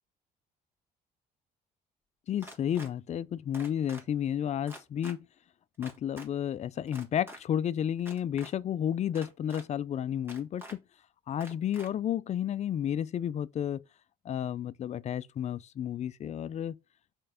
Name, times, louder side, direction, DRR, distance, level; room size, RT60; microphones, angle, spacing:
voice 1, 2.3-5.2 5.8-10.8 11.3-13.8 14.2-16.8, left 9 dB, 40° left, 0.5 m, -32 dB
sound 1, 2.4-2.9 3.5-4.0 4.7-5.2 5.8-6.3 6.9-7.4 8.0-8.5 9.2-9.6 10.3-10.8 11.4-11.9, right 1 dB, 15° right, 1.7 m, -47 dB
5.5 x 4.5 x 5.0 m
cardioid pair, 110°, 17 cm